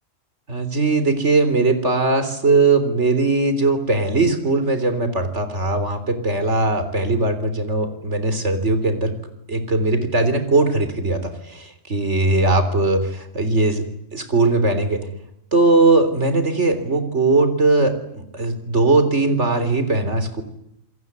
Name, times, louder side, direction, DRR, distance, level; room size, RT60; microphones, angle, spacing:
voice 1, 0.5-9.2 9.5-13.8 14.1-15.1 15.5-20.4, right 3 dB, 60° right, 10 dB, 3.9 m, -19 dB
28.0 x 22.5 x 9.7 m, 0.77 s
omnidirectional pair, 1.3 m